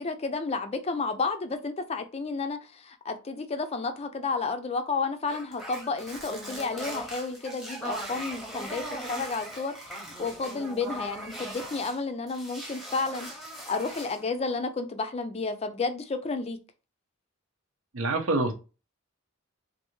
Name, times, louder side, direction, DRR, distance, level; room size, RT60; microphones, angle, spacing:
voice 1, 0.0-16.6, left 4 dB, 30° left, 0.4 m, -31 dB
sound 1, 5.3-12.0 12.3-14.2, right 1 dB, ahead, 0.8 m, -39 dB
voice 2, 17.9-18.5, right 2 dB, 75° right, 0.8 m, -26 dB
3.3 x 2.5 x 3.0 m
head